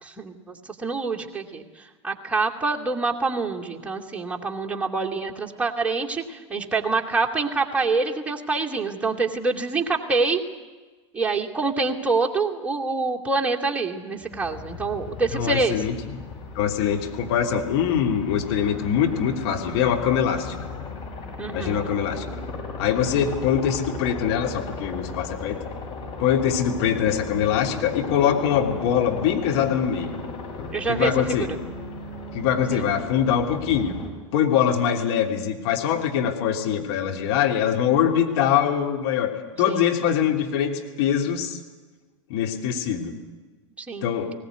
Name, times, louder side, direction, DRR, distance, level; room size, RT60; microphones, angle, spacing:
voice 1, 0.0-10.4 11.1-15.8 21.4-21.8 30.7-31.6 32.7-32.9 39.7-39.8 43.8-44.1, right 3 dB, 10° right, -1 dB, 2.6 m, -26 dB
Aircraft, 14.2-34.1, left 3 dB, 35° left, 6.2 m, -36 dB
voice 2, 15.3-15.9 16.5-20.5 21.5-22.2 22.8-25.6 26.2-30.2 30.6-31.5 32.3-33.9 34.3-39.3 39.6-41.6 42.3-43.1 44.0-44.3, left 8 dB, 55° left, 2 dB, 3.1 m, -23 dB
20.0 x 18.0 x 9.4 m, 1.3 s
figure-of-eight pair, 85°, 16 cm